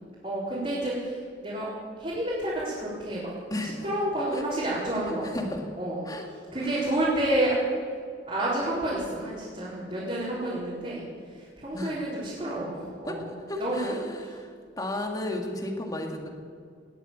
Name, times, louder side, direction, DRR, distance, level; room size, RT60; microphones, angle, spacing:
voice 1, 0.2-1.7 2.0-3.3 3.6-5.5 5.8-6.0 6.5-7.6 8.3-13.9, right 1 dB, 35° right, -9 dB, 4.3 m, -30 dB
voice 2, 3.5-3.8 4.3-4.4 5.1-5.6 6.1-6.3 6.6-6.8 11.7-11.9 13.1-13.2 13.5-14.5 14.8-16.3, left 1 dB, 20° left, 2 dB, 2.0 m, -33 dB
19.0 x 8.2 x 9.2 m, 2.1 s
head